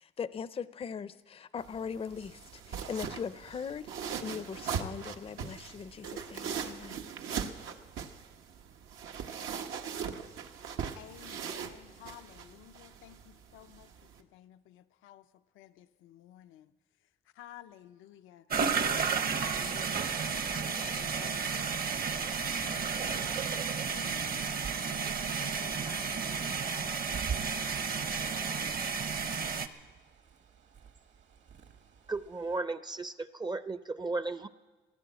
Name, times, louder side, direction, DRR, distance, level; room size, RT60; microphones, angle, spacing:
voice 1, 0.0-7.0, left 6 dB, 30° left, 0.5 m, -40 dB
sound 1, 1.6-14.2, right 7 dB, 85° right, 1.1 m, -40 dB
voice 2, 11.0-13.9 14.2-15.3 15.5-16.7 17.4-18.4 18.8-21.7 22.4-24.5 24.9-28.3, left 12 dB, 90° left, 0.6 m, -53 dB
sound 2, 18.5-29.7, right 5 dB, 50° right, 1.0 m, -32 dB
Bird, 25.5-32.6, right 7 dB, 65° right, 1.7 m, -46 dB
voice 3, 32.1-34.5, right 3 dB, 20° right, 0.5 m, -35 dB
17.0 x 11.0 x 8.0 m
cardioid pair, 90°, 20 cm